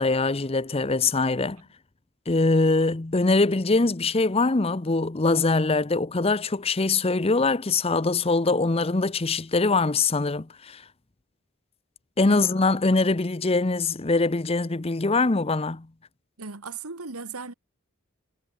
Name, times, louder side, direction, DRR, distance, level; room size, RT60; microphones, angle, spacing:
voice 1, 0.0-1.6 2.3-10.8 12.2-15.9, left 3 dB, 25° left, 0.7 m, -23 dB
voice 2, 16.4-17.5, right 4 dB, 80° right, 2.1 m, -37 dB
head